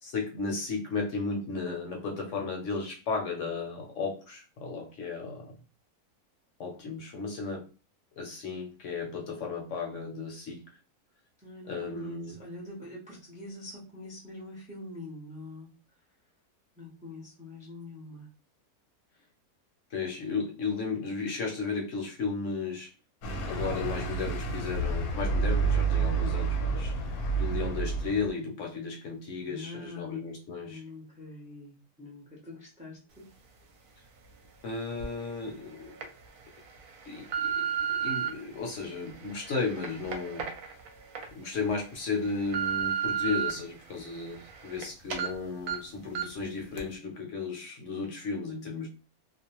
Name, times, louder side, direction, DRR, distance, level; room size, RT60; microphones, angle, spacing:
voice 1, 0.0-5.5 6.6-7.6 8.2-10.6 11.7-12.3 19.9-22.9 23.5-26.9 27.4-30.8 34.6-35.9 37.1-40.4 41.3-48.9, left 4 dB, 65° left, 1 dB, 0.9 m, -34 dB
voice 2, 11.4-15.7 16.8-18.3 29.4-30.2 30.6-33.2, left 2 dB, 10° right, -3 dB, 0.4 m, -44 dB
sound 1, 23.2-28.3, right 4 dB, 80° left, 1.1 m, -29 dB
sound 2, 35.0-35.1 35.7-36.0 36.7-38.3 38.9-41.2 41.7-41.8 42.2-43.5 43.9-44.8 45.1-45.3 45.7-45.8 46.1-46.4 46.8-46.9, right 7 dB, 70° right, 1.0 m, -32 dB
2.5 x 2.1 x 2.9 m, 0.34 s
omnidirectional pair, 1.6 m